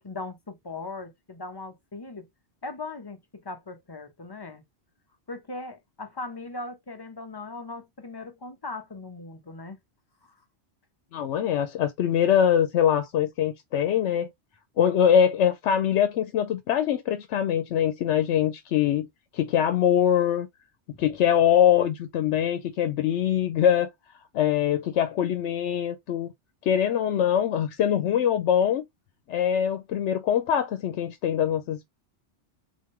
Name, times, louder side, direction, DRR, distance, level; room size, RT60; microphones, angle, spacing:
voice 1, 0.0-2.3 2.6-4.6 5.3-9.8 10.2-10.3, left 3 dB, 25° left, 0.7 m, -39 dB
voice 2, 11.1-14.3 14.8-19.1 19.3-20.5 21.0-23.9 24.3-26.3 26.6-28.8 29.3-31.9, left 9 dB, 85° left, 0.9 m, -23 dB
3.9 x 3.6 x 3.1 m
omnidirectional pair, 1.2 m